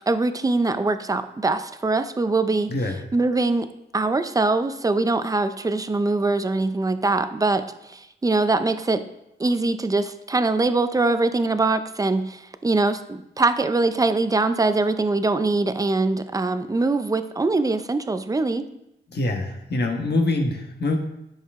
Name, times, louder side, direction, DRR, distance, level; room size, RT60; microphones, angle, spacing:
voice 1, 0.1-2.7 3.1-3.7 3.9-9.1 9.4-18.7, right 3 dB, 15° right, 11 dB, 0.5 m, -23 dB
voice 2, 19.1-21.0, left 2 dB, 55° left, 3 dB, 1.4 m, -24 dB
10.5 x 6.5 x 3.6 m, 0.86 s
wide cardioid pair, 135°, 20 cm